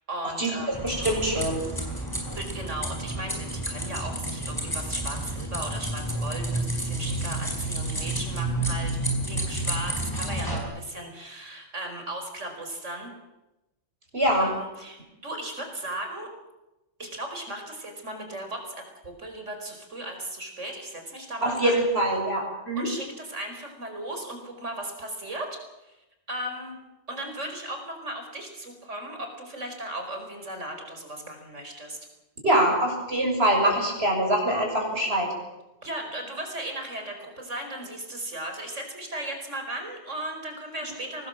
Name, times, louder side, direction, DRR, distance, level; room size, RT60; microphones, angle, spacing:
voice 1, 0.1-0.8 2.3-9.0 9.3-13.1 14.4-16.3 17.0-21.7 22.8-26.0 26.3-26.8 27.1-32.0 35.8-41.3, right 1 dB, 70° right, 4 dB, 5.2 m, -36 dB
sound 1, 0.7-10.6, right 1 dB, 15° left, 5.6 m, -30 dB
voice 2, 0.8-1.6 14.1-14.5 21.4-22.9 32.4-35.3, right 1 dB, 50° right, 1 dB, 7.1 m, -24 dB
24.0 x 19.0 x 7.6 m, 0.97 s
omnidirectional pair, 1.3 m